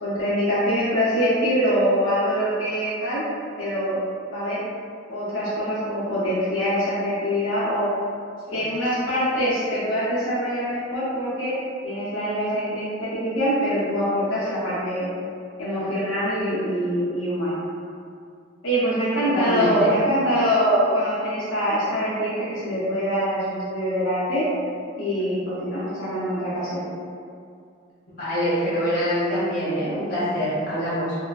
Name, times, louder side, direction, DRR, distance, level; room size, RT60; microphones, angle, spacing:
voice 1, 0.0-3.2 3.6-4.0 4.3-4.6 5.1-7.9 8.5-15.1 15.6-17.6 18.6-24.5 25.0-26.8, equal, 85° left, -10 dB, 0.7 m, -24 dB
voice 2, 19.2-19.9 28.1-31.2, equal, 45° left, -11 dB, 1.0 m, -25 dB
2.8 x 2.3 x 2.3 m, 2.3 s
head